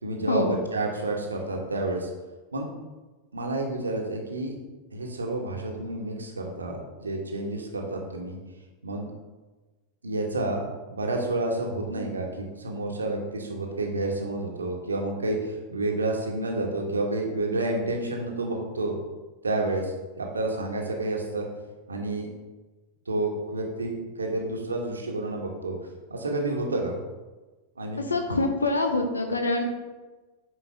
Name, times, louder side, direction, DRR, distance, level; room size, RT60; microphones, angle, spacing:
voice 1, 0.0-2.1 2.5-2.7 3.3-4.6 4.9-8.4 8.8-9.1 10.0-10.6 10.9-19.0 19.4-21.5 21.9-22.3 23.1-25.7 26.1-26.9 27.8-28.0, right 2 dB, 75° right, 1 dB, 1.2 m, -29 dB
voice 2, 28.0-29.7, left 2 dB, 75° left, 5 dB, 0.9 m, -25 dB
10.0 x 4.6 x 3.4 m, 1.2 s
figure-of-eight pair, 90°, 0 cm